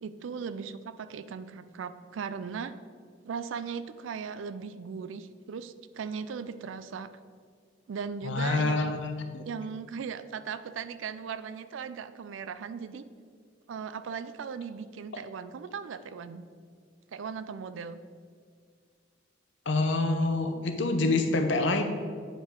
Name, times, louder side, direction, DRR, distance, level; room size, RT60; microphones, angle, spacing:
voice 1, 0.0-2.7 3.2-7.1 7.9-9.0 9.5-13.0 13.7-16.4 17.1-18.0, right 6 dB, 75° right, 13 dB, 0.4 m, -38 dB
voice 2, 8.2-9.4 19.7-21.8, left 2 dB, 65° left, 6 dB, 0.7 m, -27 dB
8.8 x 5.2 x 3.7 m, 2.1 s
head